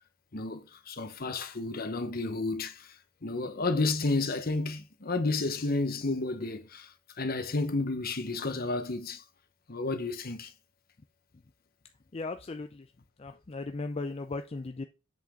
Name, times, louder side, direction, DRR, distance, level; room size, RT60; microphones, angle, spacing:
voice 1, 0.3-2.8 3.2-6.9 7.2-9.2 9.7-10.5, left 3 dB, 50° left, 1.0 m, -31 dB
voice 2, 12.1-12.8 13.2-14.8, left 3 dB, 30° left, 0.4 m, -37 dB
7.6 x 5.9 x 3.7 m
head